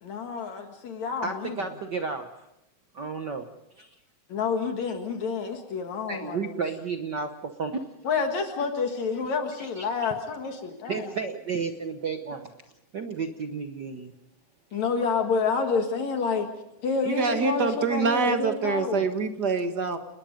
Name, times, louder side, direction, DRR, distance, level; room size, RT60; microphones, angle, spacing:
voice 1, 0.0-1.5 4.3-6.6 8.0-11.1 14.7-16.5 16.8-19.1, left 5 dB, 70° left, 4 dB, 3.0 m, -29 dB
voice 2, 1.2-2.5 2.9-3.5 3.8-3.9 6.1-7.9 9.6-9.9 10.9-12.5 12.9-14.1 14.7-14.9, right 5 dB, 65° right, 6 dB, 1.1 m, -32 dB
voice 3, 17.0-20.0, right 5 dB, 40° right, 7 dB, 1.7 m, -25 dB
30.0 x 21.0 x 5.2 m, 0.86 s
omnidirectional pair, 3.4 m